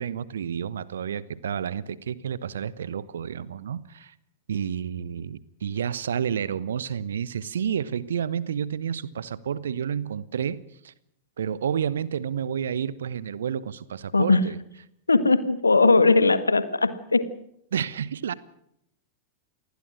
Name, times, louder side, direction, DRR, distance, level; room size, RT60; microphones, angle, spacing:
voice 1, 0.0-4.1 4.5-10.9 11.4-14.6 17.7-18.3, right 8 dB, 65° right, 1.1 m, -30 dB
voice 2, 15.1-17.2, left 3 dB, 80° left, 1.7 m, -19 dB
28.0 x 20.0 x 6.3 m
figure-of-eight pair, 90°, 0 cm